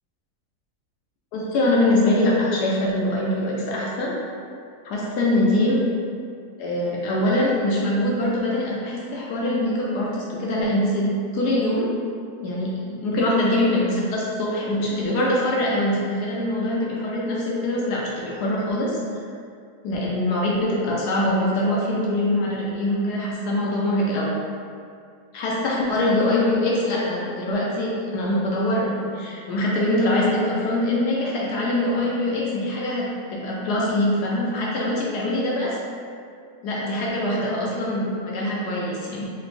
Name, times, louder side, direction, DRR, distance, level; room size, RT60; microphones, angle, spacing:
voice 1, 1.3-4.2 4.8-5.8 6.6-11.9 12.4-19.0 19.8-24.3 25.3-35.8 36.6-39.2, left 1 dB, 75° left, -4 dB, 1.1 m, -23 dB
3.4 x 3.1 x 2.5 m, 2.3 s
omnidirectional pair, 1.8 m